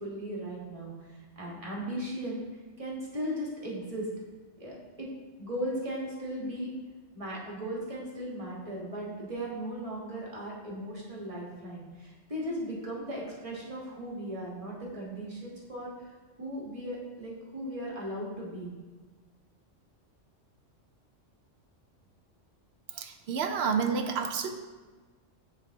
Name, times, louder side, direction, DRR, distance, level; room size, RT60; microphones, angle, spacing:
voice 1, 0.0-2.4 2.8-4.1 4.6-5.1 5.4-6.7 7.1-15.9 16.4-18.7, right 1 dB, 30° right, -4 dB, 1.5 m, -37 dB
voice 2, 22.9-24.5, right 6 dB, 65° right, 6 dB, 0.8 m, -29 dB
10.0 x 3.4 x 3.5 m, 1.3 s
omnidirectional pair, 1.3 m